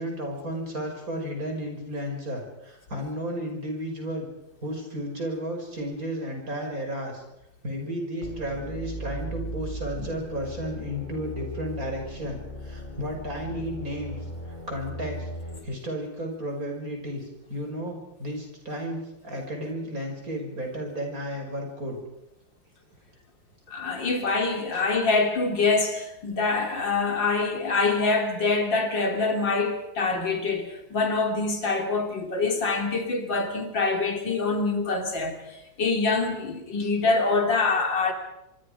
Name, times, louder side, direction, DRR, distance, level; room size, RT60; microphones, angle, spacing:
voice 1, 0.0-4.3 4.6-7.2 7.6-14.2 14.5-15.3 15.6-22.0, equal, 45° right, 6.2 m, -33 dB
sound 1, 8.2-15.6, equal, 25° left, 4.1 m, -37 dB
voice 2, 23.7-35.4 35.8-38.1, left 3 dB, 75° left, 4.0 m, -25 dB
25.5 x 24.5 x 5.1 m
omnidirectional pair, 2.0 m